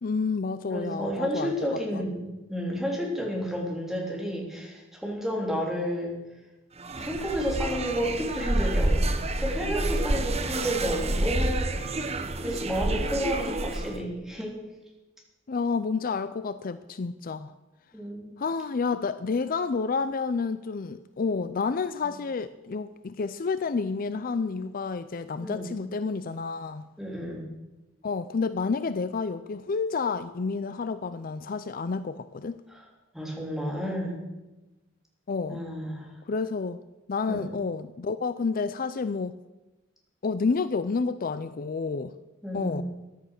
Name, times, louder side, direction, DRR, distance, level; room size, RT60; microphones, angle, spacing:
voice 1, 0.0-1.5 1.9-2.0 15.5-17.5 18.4-26.9 28.0-32.6 35.3-35.6 36.3-36.8 37.1-39.3 40.2-42.1 42.5-42.8, left 4 dB, 45° left, 13 dB, 0.5 m, -29 dB
voice 2, 0.7-6.2 6.9-9.1 9.4-11.9 12.4-14.6 17.9-18.3 25.4-25.7 27.0-27.5 32.7-32.8 33.1-34.2 35.5-36.1 37.3-37.6 42.4-42.8, equal, ahead, -2 dB, 3.7 m, -31 dB
sound 1, 6.8-14.0, right 1 dB, 35° right, 1.0 m, -28 dB
14.5 x 11.0 x 6.6 m, 1.1 s
head